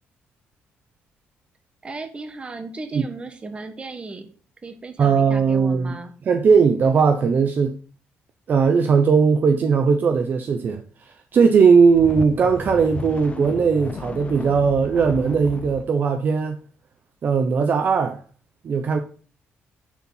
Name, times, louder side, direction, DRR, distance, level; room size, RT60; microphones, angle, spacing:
voice 1, 1.8-4.3 4.6-6.1, right 3 dB, 25° right, 1.4 m, -36 dB
voice 2, 5.0-5.9 6.3-7.8 8.5-10.8 11.3-16.6 17.2-18.2 18.6-19.0, right 5 dB, 45° right, 0.8 m, -18 dB
sound 1, 11.6-15.9, left 4 dB, 30° left, 0.8 m, -35 dB
10.0 x 4.4 x 5.5 m
cardioid pair, 130°, 4 cm